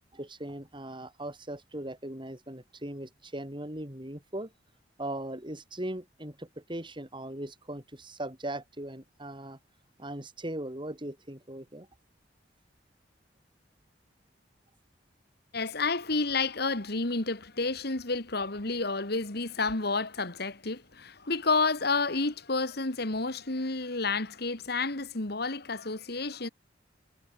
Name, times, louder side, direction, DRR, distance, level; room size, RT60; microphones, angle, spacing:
voice 1, 0.1-4.5 5.0-9.6 10.0-11.9, right 1 dB, 25° right, 6.8 m, -39 dB
voice 2, 15.5-26.5, left 3 dB, 60° left, 2.4 m, -30 dB
head